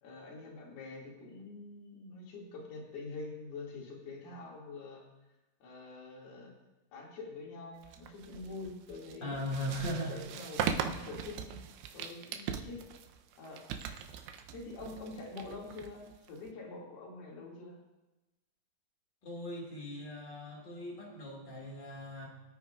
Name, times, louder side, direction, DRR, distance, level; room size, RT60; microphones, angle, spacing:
voice 1, 0.0-5.0 5.6-6.5 6.9-9.8 10.1-11.6 11.9-12.8 13.4-13.9 14.5-17.8, left 3 dB, 70° left, -3 dB, 4.2 m, -45 dB
sound 1, 7.8-16.5, right 8 dB, 85° right, 2.7 m, -40 dB
voice 2, 9.2-10.1 19.2-22.3, equal, 40° left, -1 dB, 1.8 m, -39 dB
22.0 x 9.2 x 2.4 m, 1.0 s
omnidirectional pair, 4.7 m